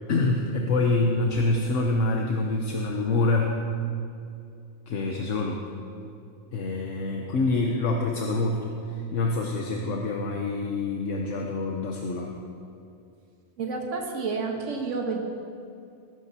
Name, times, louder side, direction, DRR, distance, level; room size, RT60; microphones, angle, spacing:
voice 1, 0.1-3.6 4.9-5.6 6.5-12.3, left 2 dB, 80° left, 1 dB, 1.2 m, -26 dB
voice 2, 13.6-15.2, right 4 dB, 80° right, 1 dB, 1.5 m, -30 dB
18.0 x 11.0 x 2.8 m, 2.5 s
omnidirectional pair, 1.3 m